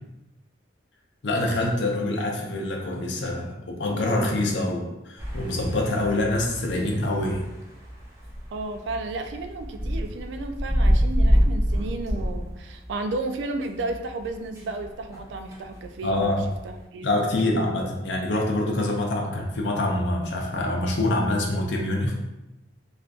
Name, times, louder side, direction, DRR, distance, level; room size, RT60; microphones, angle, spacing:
voice 1, 1.2-7.4 16.0-16.4 17.0-22.1, left 1 dB, 70° left, 1 dB, 0.6 m, -25 dB
sound 1, 5.2-16.8, equal, 15° right, 0.8 m, -27 dB
voice 2, 8.5-17.1 17.4-17.5, right 2 dB, 70° right, 7 dB, 0.3 m, -33 dB
3.5 x 2.5 x 2.4 m, 0.94 s
head